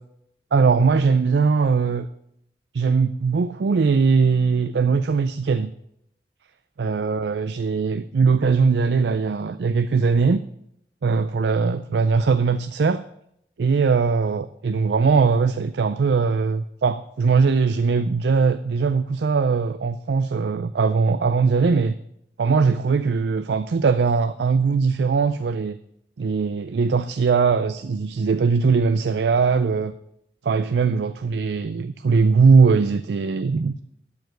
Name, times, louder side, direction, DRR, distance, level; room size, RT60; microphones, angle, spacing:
voice 1, 0.5-2.1 2.7-5.7 6.8-10.4 11.0-13.1 13.6-22.0 22.4-25.8 26.2-29.9 30.4-33.7, right 5 dB, 75° right, 12 dB, 0.4 m, -20 dB
12.0 x 4.8 x 7.9 m, 0.76 s
head